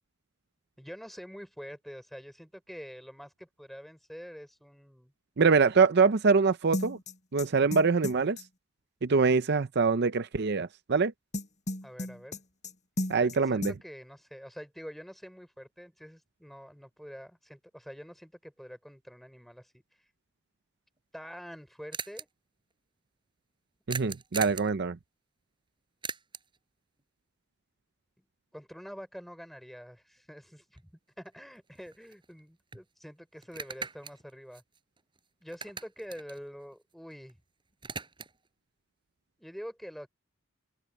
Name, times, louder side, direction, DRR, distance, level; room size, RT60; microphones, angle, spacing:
voice 1, 0.8-5.1 11.8-12.4 13.2-19.8 21.1-22.3 28.5-30.9 31.2-34.6 35.4-37.4 39.4-40.1, equal, ahead, 5.4 m, -46 dB
voice 2, 5.4-7.0 7.3-8.4 9.0-11.1 13.1-13.7 23.9-25.0, right 4 dB, 55° right, 0.6 m, -24 dB
sound 1, 6.7-8.4 11.3-12.7 13.0-13.4 13.6-13.7, left 1 dB, 35° left, 7.4 m, -34 dB
sound 2, 21.0-21.1 21.2-21.3 21.5-21.6 21.9-22.2 23.9-24.7 26.0-26.6 30.8-30.9 31.2-32.4 32.7-32.8 33.4-35.2 35.5-37.3 37.6-38.5, right 5 dB, 25° right, 5.2 m, -40 dB
head